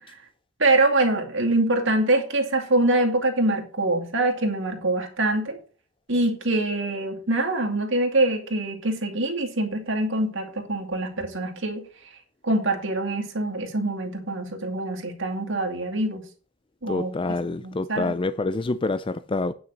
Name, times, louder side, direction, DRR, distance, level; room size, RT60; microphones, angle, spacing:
voice 1, 0.6-5.6 6.1-11.9 12.4-16.2 16.8-17.1 17.5-18.1, right 2 dB, 65° right, 2.4 m, -24 dB
voice 2, 16.9-19.5, left 3 dB, 25° left, 0.4 m, -27 dB
9.6 x 6.0 x 6.6 m
head